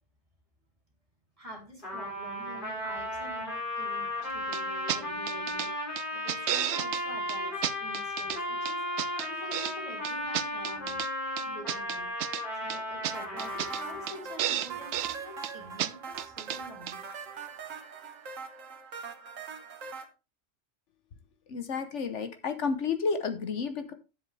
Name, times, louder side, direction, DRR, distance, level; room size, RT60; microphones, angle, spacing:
voice 1, 1.4-5.7 6.1-8.8 9.1-11.0 11.4-12.1 12.6-17.0, equal, 25° right, 2 dB, 2.8 m, -47 dB
Trumpet, 1.8-14.3, left 1 dB, 40° left, 3.6 m, -35 dB
sound 1, 4.5-4.6 4.9-5.0 5.3-5.7 6.0-7.0 7.3-7.4 7.6-8.4 8.7-9.7 10.0-11.1 11.4-12.4 12.7-12.8 13.0-13.1 13.4-13.8 14.1-14.2 14.4-15.2 15.4-15.5 15.8-15.9 16.2-16.6 16.9-17.0, right 11 dB, 70° right, 0.9 m, -32 dB
sound 2, 13.1-20.1, right 6 dB, 85° right, 1.7 m, -42 dB
voice 2, 21.5-23.9, left 5 dB, 70° left, 9 dB, 1.2 m, -31 dB
10.5 x 7.5 x 3.2 m, 0.29 s
omnidirectional pair, 1.3 m